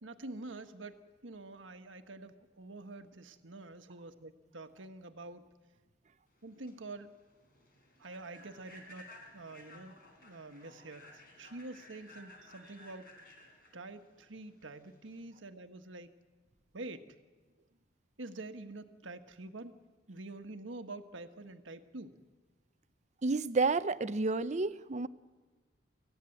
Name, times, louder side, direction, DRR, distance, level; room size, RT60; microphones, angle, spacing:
voice 1, 0.0-5.4 6.4-7.1 8.0-10.0 10.2-13.1 13.7-16.1 16.7-17.1 18.2-19.7 20.1-22.2, right 2 dB, 85° right, 7 dB, 1.4 m, -47 dB
Human voice / Train, 6.4-15.2, left 1 dB, 50° left, 4.4 m, -56 dB
voice 2, 23.2-25.1, right 3 dB, 40° right, 15 dB, 0.6 m, -30 dB
23.5 x 15.5 x 9.8 m, 1.3 s
head